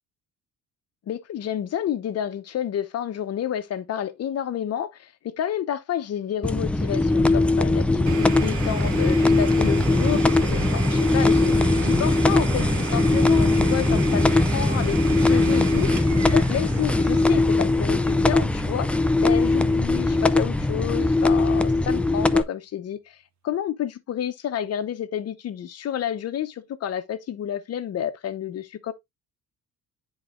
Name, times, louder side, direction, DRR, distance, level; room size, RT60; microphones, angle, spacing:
voice 1, 1.1-23.2 23.4-28.9, left 10 dB, 45° left, 0.9 m, -30 dB
sound 1, 6.4-22.4, left 2 dB, 5° left, 0.3 m, -20 dB
Domestic sounds home sounds, 8.1-19.7, right 9 dB, 55° right, 1.1 m, -36 dB
10.0 x 4.0 x 2.5 m
cardioid pair, 140°, 34 cm